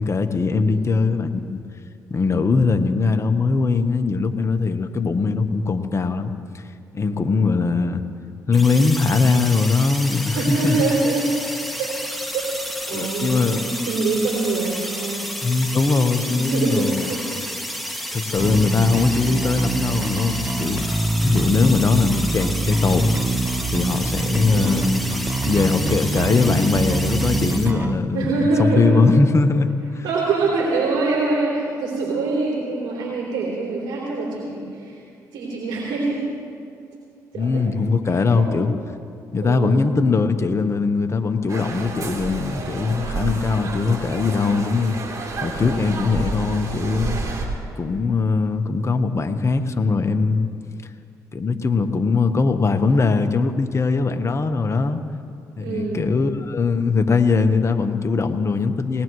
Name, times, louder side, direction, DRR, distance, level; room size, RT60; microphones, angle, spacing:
voice 1, 0.0-1.6 2.1-6.6 6.9-8.0 8.5-10.9 12.9-13.6 15.4-17.1 18.1-23.1 23.7-25.0 25.5-30.0 37.3-38.7 39.3-44.9 45.4-47.2 47.8-50.5 51.3-55.0 55.6-59.0, left 4 dB, 40° left, 7 dB, 1.2 m, -21 dB
sound 1, 8.5-27.7, equal, ahead, 2.1 m, -31 dB
voice 2, 10.3-11.3 11.8-11.9 12.3-12.5 12.9-15.3 16.2-17.3 18.2-18.3 18.7-19.0 21.6-22.0 24.5-25.0 28.1-29.1 30.0-35.0 35.3-36.2 37.3-37.6 38.1-38.6 39.4-39.8 55.6-56.1, right 3 dB, 75° right, -5 dB, 3.5 m, -24 dB
Bass guitar, 18.4-28.0, right 2 dB, 30° right, 0.9 m, -25 dB
sound 2, 41.5-47.5, right 3 dB, 45° right, 3.3 m, -30 dB
20.0 x 19.5 x 3.2 m, 2.4 s
supercardioid pair, 55°, 8 cm